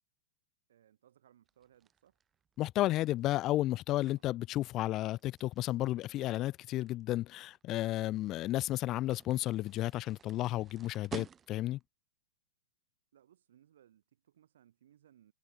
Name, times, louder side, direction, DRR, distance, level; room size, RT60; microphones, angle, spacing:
voice 1, 0.7-2.2 4.1-4.2 13.1-15.3, right 10 dB, 75° right, 4.3 m, -65 dB
sound 1, 1.5-11.9, right 7 dB, 15° right, 0.6 m, -53 dB
voice 2, 2.6-11.8, left 15 dB, 30° left, 0.8 m, -32 dB
hypercardioid pair, 145°, 0 cm